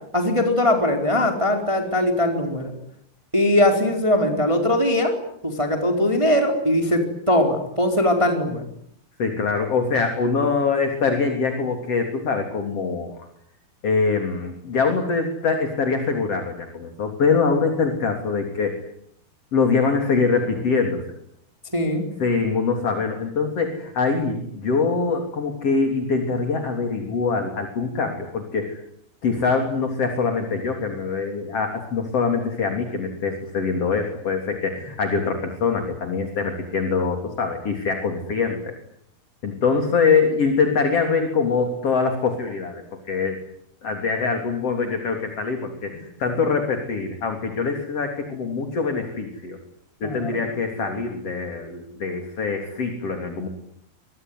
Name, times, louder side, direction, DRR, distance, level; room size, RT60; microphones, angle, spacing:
voice 1, 0.1-2.7 3.3-5.1 5.4-8.7 21.7-22.1 50.0-50.4, left 1 dB, 5° right, 4 dB, 3.9 m, -21 dB
voice 2, 9.2-13.2 13.8-18.8 19.5-21.0 22.2-28.8 29.2-38.7 39.4-42.8 43.1-43.4 43.8-49.6 50.0-53.5, left 4 dB, 40° left, 4 dB, 4.1 m, -23 dB
26.5 x 23.0 x 9.7 m, 0.71 s
omnidirectional pair, 4.5 m